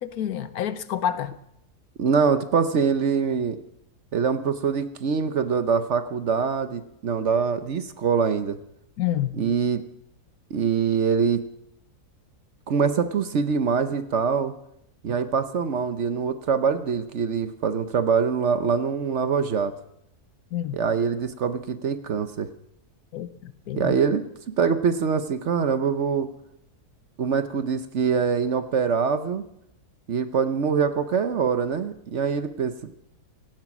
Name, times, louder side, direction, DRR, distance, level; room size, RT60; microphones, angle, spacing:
voice 1, 0.0-1.3 9.0-9.4 20.5-20.8 23.1-23.9, left 11 dB, 75° left, 13 dB, 1.3 m, -28 dB
voice 2, 2.0-3.6 4.1-8.6 9.4-9.8 10.5-11.4 12.7-14.5 15.0-19.7 20.7-22.5 23.7-24.2 24.6-26.3 27.2-29.5 30.1-32.7, right 6 dB, 55° right, 10 dB, 1.1 m, -24 dB
17.5 x 13.5 x 6.1 m, 0.80 s
omnidirectional pair, 1.6 m